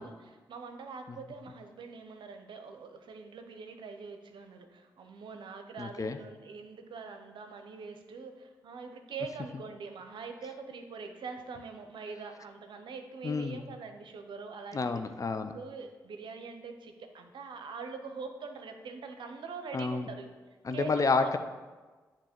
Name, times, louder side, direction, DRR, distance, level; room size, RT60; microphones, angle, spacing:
voice 1, 0.0-15.0 15.5-20.3 20.7-21.3, right 5 dB, 65° right, 6 dB, 0.6 m, -43 dB
voice 2, 5.8-6.2 13.2-13.6 14.7-15.5 19.7-20.1 20.6-21.4, left 4 dB, 40° left, 9 dB, 0.5 m, -30 dB
7.6 x 2.9 x 4.4 m, 1.3 s
hypercardioid pair, 40°, 9 cm